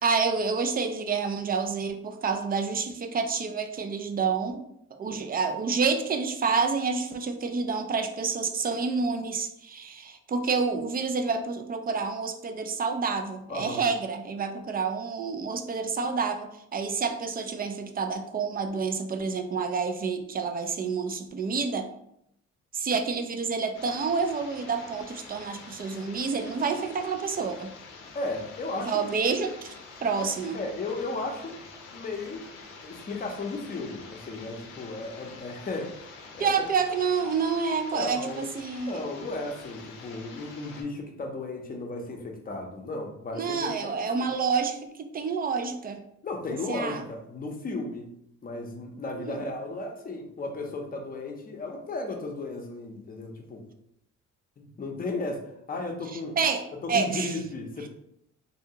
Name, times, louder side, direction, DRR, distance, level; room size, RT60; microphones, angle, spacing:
voice 1, 0.0-21.9 22.7-27.7 28.8-29.7 30.0-30.6 36.4-39.0 43.4-46.0 46.7-47.0 49.2-49.4 56.1-56.6 56.9-57.4 57.8-57.9, right 5 dB, 30° right, 7 dB, 0.4 m, -28 dB
voice 2, 13.5-13.8 25.9-26.0 28.1-29.0 30.2-30.3 30.5-31.6 31.9-32.5 32.8-36.1 36.3-36.6 37.9-38.4 38.9-44.3 46.2-48.1 48.4-53.6 54.6-55.4 55.7-56.4 56.8-57.9, left 2 dB, 30° left, 2 dB, 0.6 m, -35 dB
sound 1, 23.7-40.8, left 4 dB, 90° left, 0.6 m, -47 dB
2.7 x 2.2 x 2.8 m, 0.76 s
cardioid pair, 90°, 30 cm